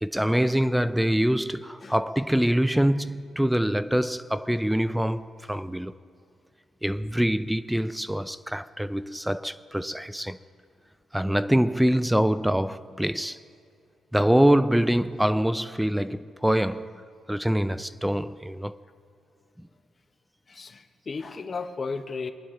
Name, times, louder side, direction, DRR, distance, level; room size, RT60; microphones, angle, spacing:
voice 1, 0.0-6.0 6.8-10.4 11.1-13.4 14.1-17.0 17.3-18.8 19.6-19.7, equal, 5° right, 0.3 m, -24 dB
voice 2, 20.5-22.3, left 4 dB, 35° left, 0.9 m, -34 dB
23.0 x 9.7 x 3.7 m
cardioid pair, 90°, 0 cm